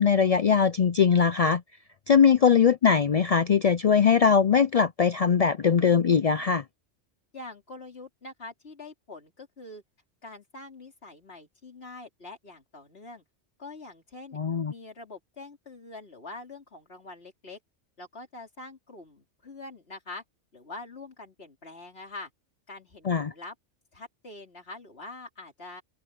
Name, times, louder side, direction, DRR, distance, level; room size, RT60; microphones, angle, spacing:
voice 1, 0.0-1.6 2.1-6.6 14.3-14.7 23.1-23.3, left 6 dB, 75° left, 0.3 m, -21 dB
voice 2, 7.3-9.8 10.2-13.2 13.6-14.4 14.7-17.6 18.0-20.2 20.5-22.3 22.7-23.6 23.9-25.8, left 2 dB, 55° left, 4.1 m, -44 dB
omnidirectional pair, 1.2 m